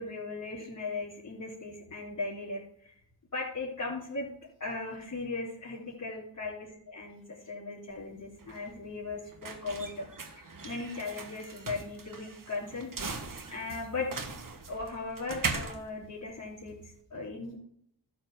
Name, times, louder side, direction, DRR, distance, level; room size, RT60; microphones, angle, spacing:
voice 1, 0.0-2.9 3.3-4.3 4.6-10.1 10.3-13.2 13.5-14.1 14.7-17.6, left 3 dB, 40° left, -6 dB, 3.7 m, -38 dB
sound 1, 7.9-17.0, right 4 dB, 45° right, 1.6 m, -40 dB
12.0 x 4.3 x 7.9 m, 0.67 s
cardioid pair, 60°, 44 cm